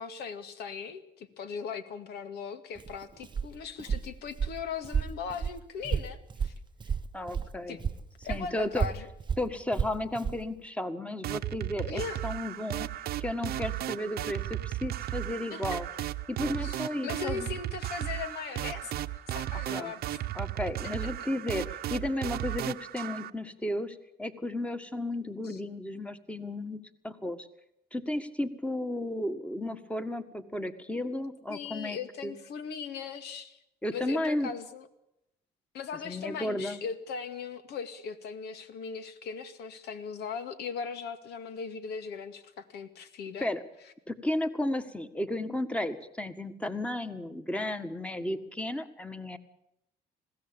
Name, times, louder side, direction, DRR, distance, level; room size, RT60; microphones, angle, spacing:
voice 1, 0.0-6.5 7.7-7.8 8.2-9.1 11.9-12.2 15.5-16.1 16.6-18.9 19.3-20.2 21.0-21.1 25.4-25.6 31.5-33.6 33.9-34.9 35.7-43.5, left 6 dB, 75° left, 10 dB, 2.2 m, -39 dB
Walk footsteps, 2.7-7.5 7.8-10.4, right 6 dB, 25° right, 0.8 m, -32 dB
voice 2, 7.1-7.9 8.3-8.9 9.4-12.9 13.2-15.9 16.3-17.5 19.7-19.9 20.3-27.5 27.9-32.3 33.8-34.5 36.0-36.8 43.4-43.6 44.1-49.4, left 1 dB, 5° left, 10 dB, 1.7 m, -34 dB
sound 1, 11.2-23.3, right 14 dB, 65° right, 1.0 m, -35 dB
21.0 x 16.5 x 8.9 m, 0.81 s
cardioid pair, 110°, 17 cm